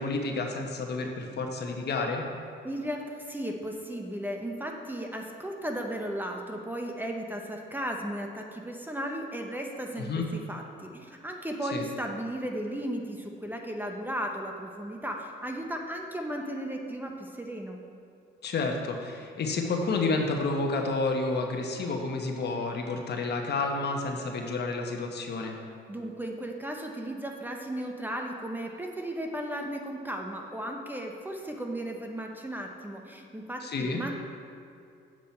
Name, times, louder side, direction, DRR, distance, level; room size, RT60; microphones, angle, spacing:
voice 1, 0.0-2.2 10.1-10.3 11.7-11.8 18.4-25.6 33.6-34.0, left 3 dB, 55° left, 2 dB, 1.1 m, -30 dB
voice 2, 2.6-17.8 25.9-34.2, right 1 dB, 10° right, 2 dB, 0.8 m, -35 dB
7.7 x 7.2 x 4.4 m, 2.5 s
cardioid pair, 90°, 20 cm